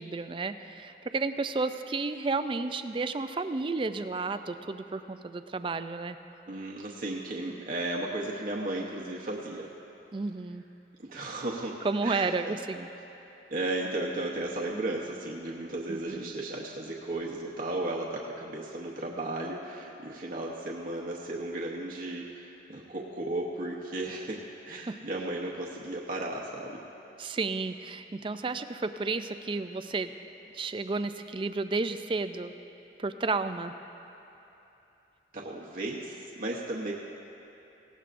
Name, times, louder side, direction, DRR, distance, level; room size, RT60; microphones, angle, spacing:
voice 1, 0.0-6.2 10.1-10.6 11.8-12.9 15.9-16.3 24.9-25.0 27.2-30.1 30.5-32.5 33.0-33.7, right 3 dB, 30° right, 10 dB, 0.4 m, -32 dB
voice 2, 6.5-9.7 11.0-12.5 13.5-26.8 35.3-36.9, right 2 dB, 50° right, -3 dB, 0.9 m, -35 dB
18.5 x 16.5 x 2.6 m, 3.0 s
head